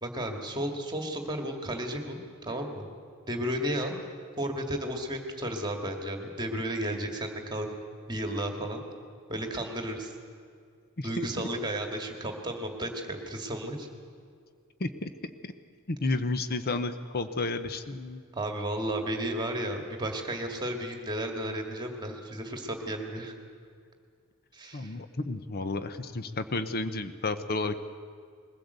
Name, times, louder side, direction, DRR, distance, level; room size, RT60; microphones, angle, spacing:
voice 1, 0.0-2.9 3.3-4.0 4.4-7.7 8.1-8.8 9.3-10.1 11.0-13.9 18.3-23.3 24.5-24.9, right 1 dB, 20° right, 3 dB, 2.0 m, -33 dB
voice 2, 11.0-11.5 14.8-15.1 15.4-15.5 15.9-18.2 24.7-27.8, left 2 dB, 45° left, 10 dB, 0.9 m, -32 dB
21.5 x 16.0 x 8.2 m, 2.2 s
head